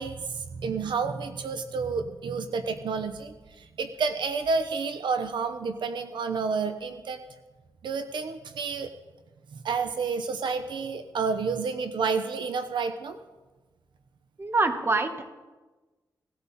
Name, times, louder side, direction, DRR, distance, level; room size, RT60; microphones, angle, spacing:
voice 1, 0.0-7.2 7.8-8.9 9.5-13.2, right 5 dB, 85° right, 8 dB, 0.9 m, -30 dB
voice 2, 14.4-15.3, right 3 dB, 30° right, 6 dB, 1.5 m, -25 dB
18.5 x 14.0 x 4.2 m, 1.2 s
wide cardioid pair, 135°, 8 cm